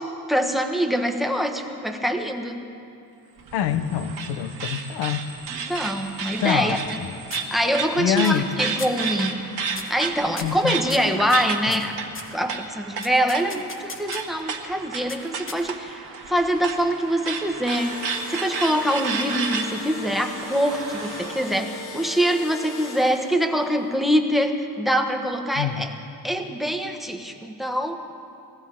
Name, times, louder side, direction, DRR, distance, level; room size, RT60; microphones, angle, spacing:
voice 1, 0.0-2.6 5.7-6.8 7.5-9.4 9.9-12.0 12.3-25.9 26.2-28.0, equal, ahead, 5 dB, 1.2 m, -24 dB
sound 1, 3.4-21.6, right 5 dB, 65° right, 1.7 m, -33 dB
voice 2, 3.5-5.3 6.4-6.8 8.0-8.5 10.4-10.8 11.7-11.8 25.6-25.9, left 9 dB, 75° left, 10 dB, 0.9 m, -25 dB
sound 2, 6.1-7.0 7.3-7.9 8.2-8.5 8.8-9.1 9.7-10.0 10.4-12.4 13.0-14.4 15.1-15.9, left 3 dB, 30° left, 1.3 m, -39 dB
Engine / Drill, 17.4-23.6, left 3 dB, 45° left, 1.5 m, -39 dB
21.0 x 15.0 x 3.6 m, 2.6 s
cardioid pair, 95°, 41 cm